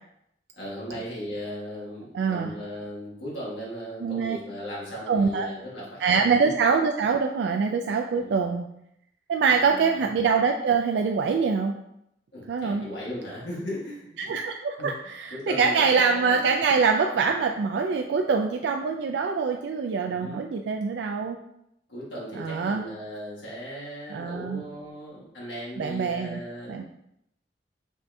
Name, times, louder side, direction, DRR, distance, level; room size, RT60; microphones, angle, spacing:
voice 1, 0.6-6.3 8.1-8.4 9.5-10.0 12.3-14.4 14.8-14.9 15.3-16.5 20.1-20.4 21.9-26.8, equal, 85° left, -6 dB, 1.5 m, -37 dB
voice 2, 2.1-2.5 4.0-4.4 5.1-5.5 6.0-8.7 9.3-11.7 12.5-12.8 14.2-21.4 22.4-22.8 24.1-24.6 25.8-26.4 26.7-26.8, right 5 dB, 70° right, 3 dB, 0.3 m, -24 dB
5.3 x 3.4 x 2.6 m, 0.78 s
head